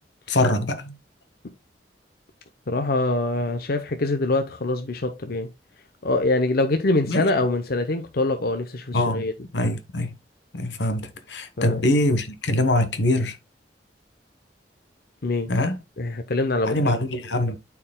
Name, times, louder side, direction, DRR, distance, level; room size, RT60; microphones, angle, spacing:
voice 1, 0.3-1.0 7.1-7.2 8.9-9.3 9.5-10.1 10.5-13.4 15.5-15.8 16.6-17.6, left 1 dB, 85° left, 1.1 m, -23 dB
voice 2, 2.7-5.5 6.0-9.3 11.6-11.8 15.2-15.5 16.0-16.9, left 2 dB, 60° left, 0.7 m, -24 dB
12.5 x 4.6 x 2.2 m
head